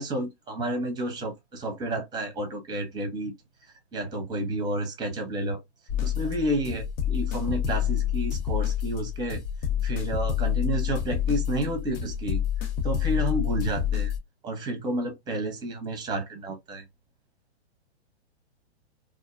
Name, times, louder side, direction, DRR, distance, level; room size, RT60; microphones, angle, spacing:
voice 1, 0.0-3.3 3.9-5.6 6.0-9.4 9.8-14.1 14.4-16.8, right 1 dB, 15° right, 0.7 m, -30 dB
sound 1, 5.9-14.2, left 10 dB, 40° left, 0.6 m, -28 dB
2.4 x 2.1 x 2.4 m
hypercardioid pair, 125°, 33 cm